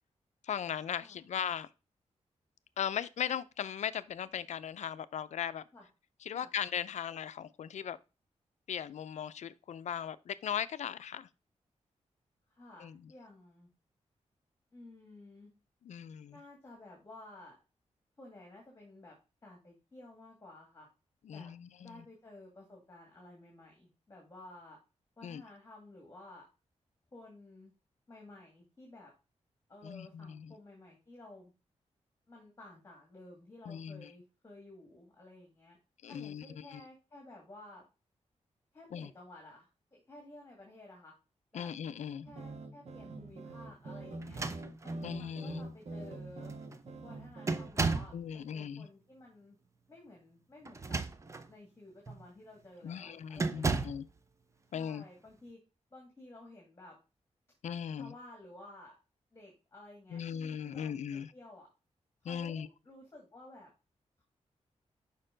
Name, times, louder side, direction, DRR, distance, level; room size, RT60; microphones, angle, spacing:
voice 1, 0.4-1.7 2.8-5.6 6.2-8.0 8.7-11.3 12.8-13.1 15.8-16.4 21.2-22.0 25.2-25.4 29.8-30.5 33.7-34.1 36.0-36.8 38.9-39.1 41.5-42.3 45.0-45.6 48.1-48.9 52.8-54.1 54.7-55.0 57.6-58.1 60.1-61.3 62.2-62.7, left 8 dB, 75° left, 0.5 m, -38 dB
voice 2, 12.5-13.7 14.7-15.5 16.3-17.6 18.2-19.1 19.4-20.9 21.3-21.5 21.8-24.8 25.2-26.4 27.1-27.7 28.1-29.1 29.7-31.5 32.3-35.8 36.1-37.8 38.7-41.1 41.5-41.7 42.2-44.4 44.8-46.5 47.0-49.6 49.9-51.0 51.5-53.9 54.7-55.6 55.9-56.9 57.9-58.9 59.3-61.7 62.2-63.7 64.2-64.3, left 2 dB, 20° left, 2.0 m, -53 dB
sound 1, 42.3-47.7, right 2 dB, 60° right, 1.4 m, -44 dB
sound 2, 44.2-45.1 46.0-46.1 46.4-46.8 47.5-48.2 50.6-51.5 52.1-52.3 53.4-54.1, right 3 dB, 25° right, 0.5 m, -34 dB
6.6 x 5.3 x 3.8 m
wide cardioid pair, 140°, 12 cm